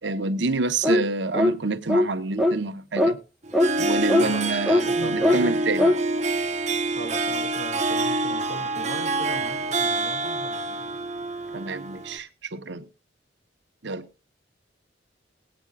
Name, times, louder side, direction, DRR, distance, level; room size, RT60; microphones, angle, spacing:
voice 1, 0.0-3.2 3.8-5.9 11.5-12.9 13.8-14.1, right 3 dB, 80° right, 1.1 m, -28 dB
sound 1, 0.8-1.1 1.3-1.6 1.9-2.1 2.4-2.6 3.0-3.1 3.5-3.7 4.1-4.3 4.7-4.8 5.2-5.4 5.8-6.0, left 1 dB, ahead, 0.9 m, -19 dB
Harp, 3.4-12.2, right 2 dB, 40° right, 0.9 m, -26 dB
voice 2, 4.2-5.5 6.9-10.9, equal, 70° left, 2.4 m, -38 dB
19.5 x 8.8 x 2.4 m
head